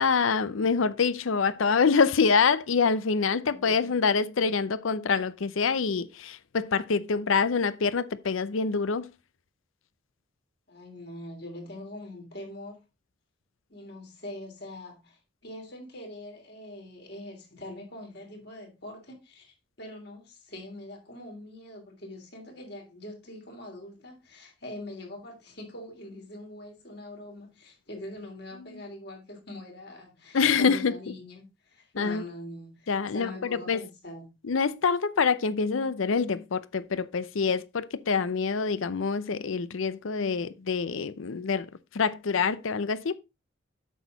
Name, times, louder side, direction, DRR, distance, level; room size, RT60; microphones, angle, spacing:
voice 1, 0.0-9.1 28.7-28.8 30.3-30.9 32.0-32.2 32.9-33.8 34.4-41.7 41.9-43.2, left 5 dB, 80° left, 0.6 m, -26 dB
voice 2, 3.3-3.9 10.7-12.8 13.7-34.3, left 1 dB, 55° left, 3.1 m, -43 dB
8.2 x 6.2 x 3.9 m
head